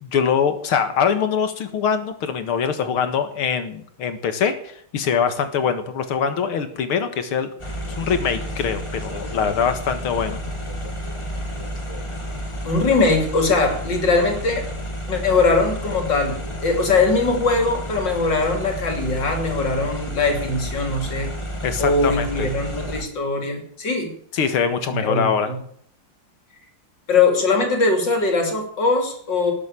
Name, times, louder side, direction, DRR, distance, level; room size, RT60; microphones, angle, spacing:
voice 1, 0.0-7.5 8.0-10.5 21.6-22.5 24.3-25.5, left 7 dB, 80° left, 9 dB, 2.5 m, -23 dB
sound 1, 7.6-23.0, equal, 15° left, 1.9 m, -31 dB
voice 2, 12.6-14.6 15.1-21.3 21.8-24.1 24.9-25.6 27.1-29.5, left 3 dB, 55° left, 3 dB, 4.0 m, -21 dB
19.0 x 8.4 x 7.4 m, 0.64 s
omnidirectional pair, 2.4 m